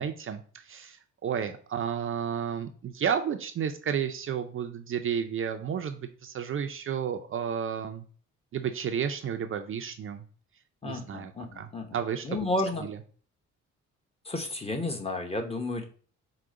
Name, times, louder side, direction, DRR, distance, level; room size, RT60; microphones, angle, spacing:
voice 1, 0.0-8.1 8.5-10.2 10.8-12.4 12.9-13.0, right 8 dB, 45° right, 6 dB, 0.4 m, -32 dB
voice 2, 10.8-12.0 12.2-12.9 14.2-15.8, left 2 dB, 20° left, 4 dB, 0.8 m, -32 dB
4.8 x 2.1 x 3.6 m, 0.42 s
cardioid pair, 90°, 30 cm